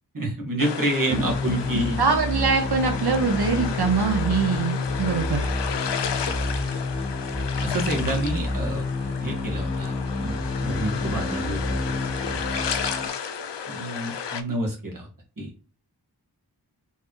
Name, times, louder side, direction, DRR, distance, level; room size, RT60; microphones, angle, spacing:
voice 1, 0.1-2.0 7.6-8.8 9.2-9.9 10.2-11.6 11.8-12.0 12.3-12.4 13.7-15.1 15.4-15.5, right 1 dB, 50° right, -2 dB, 1.7 m, -28 dB
sound 1, 0.6-14.4, left 7 dB, 85° left, 0.6 m, -33 dB
sound 2, 1.1-13.1, left 2 dB, 15° left, 0.8 m, -29 dB
voice 2, 1.7-5.5, right 5 dB, 65° right, 5 dB, 0.7 m, -23 dB
4.5 x 3.5 x 3.0 m, 0.37 s
wide cardioid pair, 65°, 41 cm